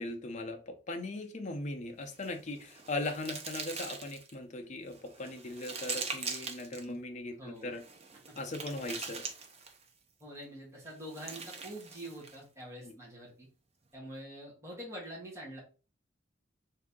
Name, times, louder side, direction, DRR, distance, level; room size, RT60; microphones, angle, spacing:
voice 1, 0.0-7.8 8.4-9.2 12.8-12.9, left 2 dB, 40° left, 4 dB, 0.7 m, -39 dB
sound 1, 2.1-4.3 4.9-6.8 7.7-9.9 10.9-12.4, right 4 dB, 35° right, 0.7 m, -42 dB
voice 2, 7.4-7.7 8.3-8.4 10.2-13.5 13.9-15.6, equal, 15° right, -4 dB, 1.3 m, -45 dB
3.7 x 2.8 x 3.6 m, 0.34 s
head